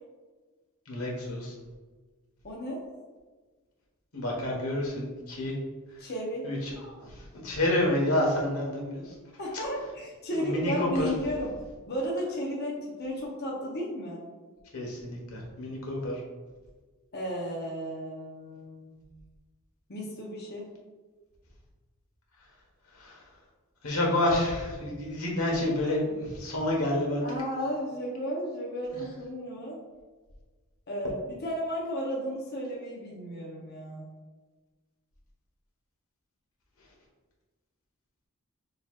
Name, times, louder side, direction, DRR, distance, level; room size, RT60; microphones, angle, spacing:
voice 1, 0.9-1.5 4.1-5.5 6.4-9.1 10.4-11.0 14.7-16.2 22.9-23.2 23.8-27.2, left 1 dB, 85° left, -2 dB, 1.2 m, -29 dB
voice 2, 2.4-2.8 6.0-6.4 9.4-11.5 11.9-14.2 17.1-19.1 19.9-20.7 27.2-29.8 30.9-34.1, equal, 50° left, -4 dB, 0.8 m, -34 dB
6.7 x 2.9 x 2.4 m, 1.3 s
head